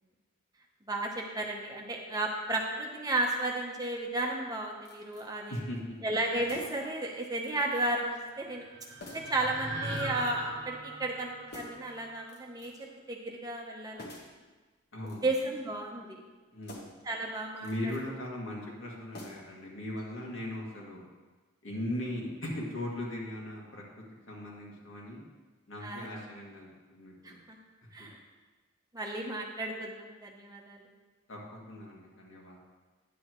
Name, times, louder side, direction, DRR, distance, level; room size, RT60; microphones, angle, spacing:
voice 1, 0.9-5.5 6.0-8.7 9.1-12.7 13.1-14.1 15.2-16.2 17.0-17.9 25.8-26.1 27.2-27.6 27.9-28.2 28.9-30.8, right 2 dB, 20° right, 0 dB, 0.9 m, -33 dB
sound 1, 4.9-5.3 6.4-7.0 7.4-7.9 8.1-8.3 9.0-9.4 9.9-10.5 11.5-11.9 12.3-12.9 14.0-14.4 15.0-15.7 16.6-17.1 17.6-18.0 19.1-19.7 20.0-20.1, left 1 dB, 50° left, 1.3 m, -49 dB
voice 2, 5.5-6.0 14.9-15.3 16.5-16.9 17.6-21.0 21.6-25.2 25.7-27.4 31.3-32.6, left 1 dB, 75° left, -3 dB, 2.0 m, -39 dB
sound 2, 8.1-12.4, right 2 dB, 60° right, 1.0 m, -40 dB
10.0 x 8.5 x 3.1 m, 1.3 s
head